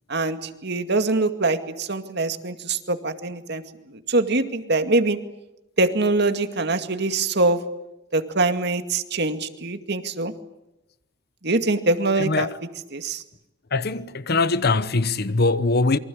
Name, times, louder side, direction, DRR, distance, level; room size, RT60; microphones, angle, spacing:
voice 1, 0.1-3.6 3.9-5.2 5.8-7.6 8.1-10.3 11.4-12.5 12.9-13.2, right 2 dB, 55° right, 2.2 m, -23 dB
voice 2, 12.2-12.6 13.7-16.0, left 3 dB, 55° left, 1.0 m, -22 dB
27.5 x 24.0 x 8.6 m
head